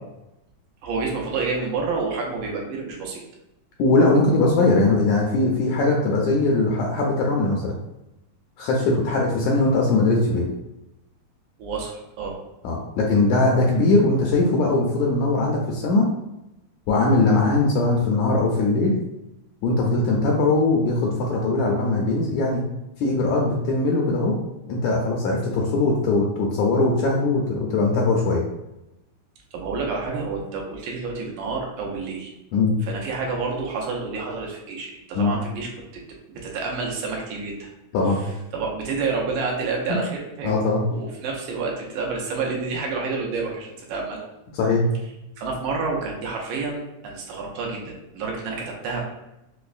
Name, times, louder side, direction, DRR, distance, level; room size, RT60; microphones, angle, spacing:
voice 1, 0.8-3.2 11.6-12.4 29.5-32.3 32.8-35.7 36.3-37.7 38.5-44.3 45.4-49.0, right 4 dB, 85° right, -1 dB, 2.1 m, -29 dB
voice 2, 3.8-7.7 8.6-10.5 12.6-16.1 16.9-18.9 19.6-22.6 23.0-24.4 24.7-28.4 32.5-32.7 35.1-35.3 37.9-38.2 39.9-40.0 40.4-40.8 44.5-44.8, left 2 dB, 80° left, -1 dB, 1.7 m, -20 dB
5.2 x 2.1 x 2.4 m, 0.90 s
omnidirectional pair, 3.5 m